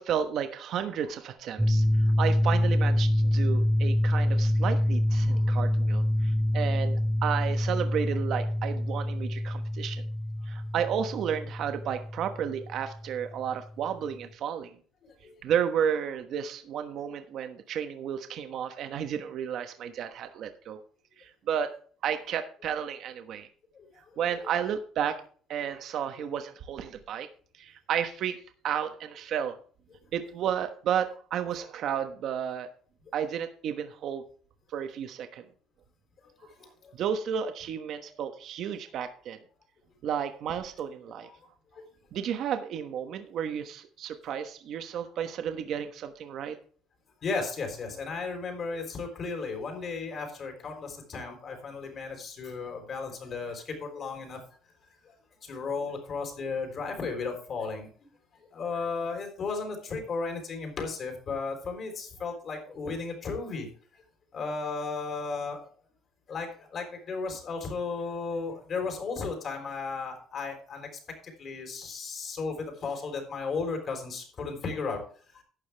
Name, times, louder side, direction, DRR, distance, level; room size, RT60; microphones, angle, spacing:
voice 1, 0.0-1.8 2.2-10.1 10.5-14.8 15.4-20.8 21.2-21.7 22.0-23.5 24.2-25.2 25.5-27.3 27.6-29.6 30.1-32.7 33.1-34.2 34.7-35.4 36.9-39.4 40.0-41.3 42.1-46.6, right 8 dB, 50° right, 7 dB, 1.2 m, -32 dB
sound 1, 1.6-13.4, left 1 dB, 5° right, 0.5 m, -26 dB
voice 2, 36.4-36.9 41.2-41.4 41.7-41.8 47.2-54.4 55.0-55.1 55.4-57.9 58.5-63.7 64.3-65.6 66.3-70.9 71.4-75.0 75.3-75.4, left 4 dB, 35° left, 5 dB, 3.7 m, -35 dB
12.0 x 9.4 x 3.4 m, 0.43 s
cardioid pair, 160°, 0 cm